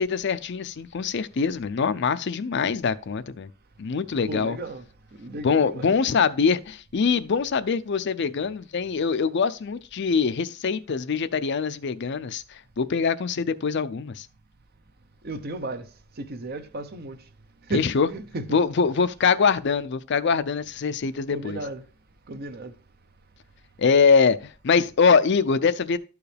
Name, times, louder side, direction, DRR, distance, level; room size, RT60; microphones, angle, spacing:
voice 1, 0.0-3.5 3.8-4.6 5.4-12.4 12.8-14.3 17.7-18.1 18.5-21.6 23.8-24.4 24.6-26.0, left 5 dB, 55° left, 0.5 m, -23 dB
voice 2, 4.3-4.8 5.2-5.9 15.2-15.9 16.2-17.2 17.7-18.5 21.3-21.8 22.3-22.7, right 2 dB, 50° right, 0.8 m, -34 dB
12.5 x 4.7 x 3.3 m
head